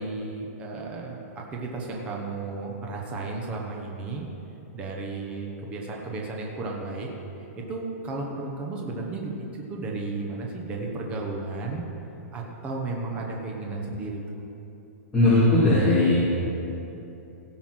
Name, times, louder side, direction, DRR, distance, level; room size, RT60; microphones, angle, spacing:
voice 1, 0.0-4.3 4.7-7.1 7.6-11.9 12.3-14.2, right 3 dB, 15° right, -1 dB, 1.0 m, -33 dB
voice 2, 15.1-16.2, left 2 dB, 5° left, -14 dB, 2.2 m, -18 dB
17.0 x 5.8 x 6.2 m, 3.0 s
hypercardioid pair, 170°, 8 cm